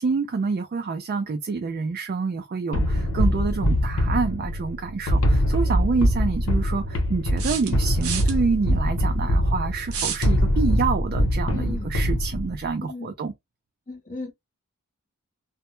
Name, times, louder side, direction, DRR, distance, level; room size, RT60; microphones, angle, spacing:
voice 1, 0.0-13.3, right 4 dB, 45° right, 0.3 m, -27 dB
sound 1, 2.7-12.7, equal, 80° left, 0.7 m, -23 dB
sound 2, 5.3-5.4 7.4-8.3 9.9-10.3, right 7 dB, 80° right, 0.7 m, -30 dB
voice 2, 11.5-11.9 12.8-13.1 13.9-14.3, left 3 dB, 35° left, 0.6 m, -35 dB
2.1 x 2.0 x 3.0 m
head